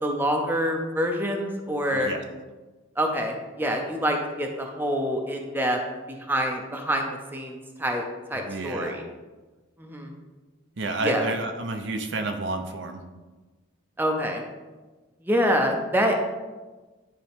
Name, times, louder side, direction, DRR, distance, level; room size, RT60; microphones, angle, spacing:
voice 1, 0.0-2.1 3.0-5.8 6.1-8.0 8.3-9.0 9.8-10.1 11.0-11.3 14.0-14.4 15.2-16.1, equal, 10° right, 2 dB, 0.7 m, -26 dB
voice 2, 1.9-2.2 8.4-9.0 10.8-13.0, right 2 dB, 60° right, 5 dB, 0.7 m, -30 dB
10.5 x 4.7 x 3.6 m, 1.2 s
head